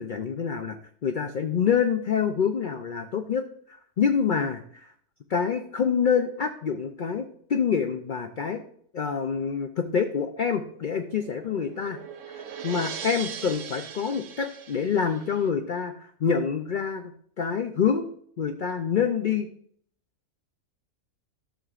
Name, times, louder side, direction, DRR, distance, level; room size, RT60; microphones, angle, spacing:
voice 1, 0.0-4.9 5.3-8.6 8.9-12.0 12.3-18.1 18.4-19.5, left 6 dB, 85° left, 6 dB, 0.4 m, -27 dB
sound 1, 10.7-15.5, right 7 dB, 60° right, 1.1 m, -40 dB
12.5 x 6.8 x 2.5 m, 0.63 s
omnidirectional pair, 1.6 m